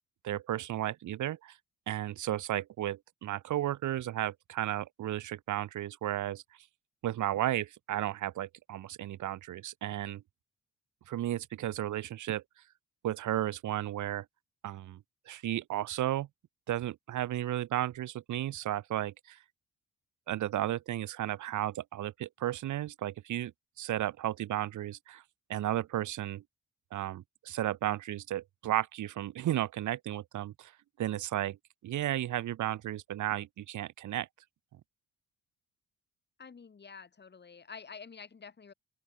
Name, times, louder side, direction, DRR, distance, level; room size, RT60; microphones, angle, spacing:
voice 1, 0.2-1.6 1.9-6.4 7.0-10.2 11.1-12.4 13.0-14.2 14.6-15.0 15.3-16.3 16.7-19.4 20.3-23.5 23.8-25.2 25.5-26.4 26.9-30.7 31.0-31.6 31.8-34.3, right 13 dB, 75° right, 2.5 m, -34 dB
voice 2, 36.4-38.7, left 5 dB, 35° left, 3.7 m, -48 dB
open air
cardioid pair, 90°, 30 cm